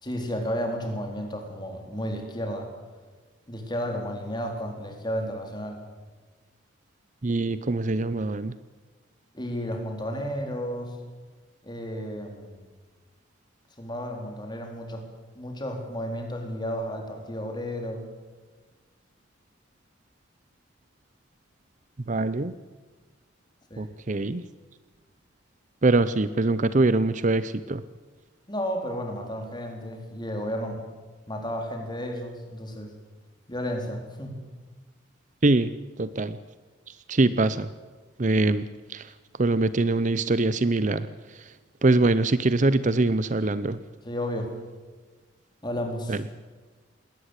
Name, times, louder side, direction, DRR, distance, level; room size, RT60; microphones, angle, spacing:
voice 1, 0.0-2.7 3.5-5.8 9.3-11.0 11.6-12.6 13.8-15.0 15.4-18.0 23.7-23.9 28.5-30.8 31.3-32.9 33.5-34.4 44.0-44.5 45.6-46.2, equal, 20° left, 3 dB, 3.8 m, -32 dB
voice 2, 7.2-8.6 22.1-22.5 23.8-24.4 25.8-27.8 35.4-35.7 36.0-36.4 37.1-37.7 38.2-39.1 39.4-41.1 41.3-41.5 41.8-43.8 46.1-46.2, right 2 dB, 40° right, 15 dB, 0.6 m, -23 dB
20.5 x 18.0 x 8.2 m, 1.3 s
head